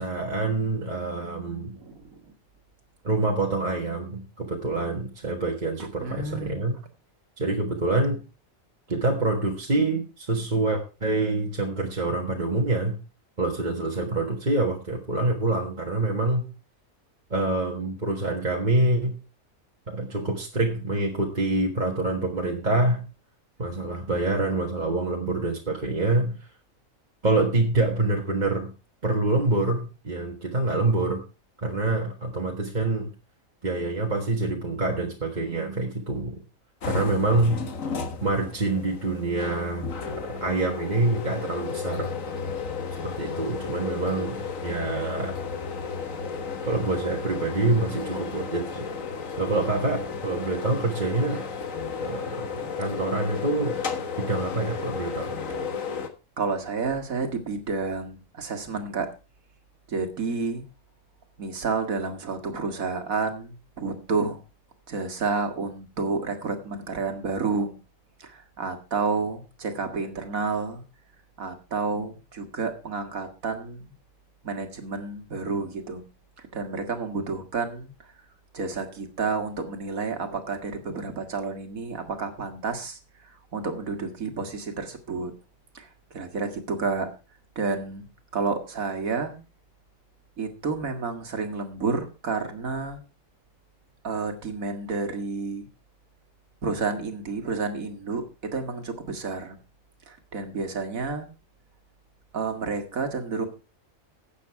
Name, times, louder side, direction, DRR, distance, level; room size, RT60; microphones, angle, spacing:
voice 1, 0.0-1.8 3.0-6.7 7.4-8.2 8.9-13.0 13.4-16.5 17.3-19.2 19.9-23.0 23.6-26.5 27.2-28.7 29.0-31.2 31.6-33.1 33.6-36.3 36.9-37.6 38.2-42.1 43.0-45.4 46.6-48.9 49.4-51.4 52.0-53.8 54.2-55.3, right 2 dB, 35° right, 0 dB, 1.7 m, -26 dB
voice 2, 1.8-2.3 6.0-6.7 56.4-59.1 59.9-60.6 61.4-64.4 64.9-67.7 68.2-70.8 71.4-73.9 74.4-76.0 76.4-77.9 78.5-83.0 83.2-85.3 85.7-87.1 87.6-88.1 88.3-89.4 90.4-93.0 94.0-95.7 96.6-98.2 98.5-99.6 100.1-101.3 102.3-103.5, right 4 dB, 80° right, 6 dB, 2.2 m, -30 dB
sound 1, 36.8-56.1, left 5 dB, 70° left, 1.8 m, -33 dB
12.5 x 8.5 x 4.6 m, 0.31 s
omnidirectional pair, 1.4 m